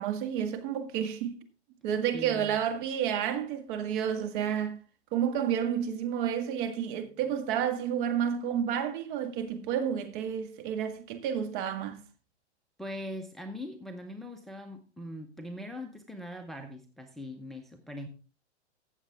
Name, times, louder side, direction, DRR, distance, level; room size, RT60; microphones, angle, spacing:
voice 1, 0.0-1.4 1.8-4.8 5.1-12.0, right 9 dB, 45° right, 1.8 m, -30 dB
voice 2, 2.1-2.6 12.8-18.1, left 1 dB, ahead, 0.8 m, -41 dB
15.0 x 7.4 x 3.5 m
hypercardioid pair, 125°, 35 cm